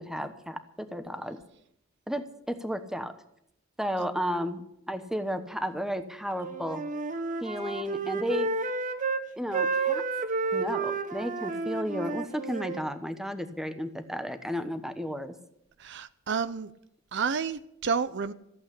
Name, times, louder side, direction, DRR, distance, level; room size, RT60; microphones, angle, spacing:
voice 1, 0.0-1.4 2.1-3.1 3.8-6.8 7.4-8.5 9.4-10.0 10.5-15.3, equal, ahead, 1.0 m, -33 dB
Wind instrument woodwind instrument, 6.4-9.3 9.5-12.8, right 4 dB, 40° right, 1.0 m, -31 dB
voice 2, 15.8-16.7 17.1-18.3, right 5 dB, 55° right, 0.6 m, -30 dB
14.5 x 8.1 x 9.8 m
head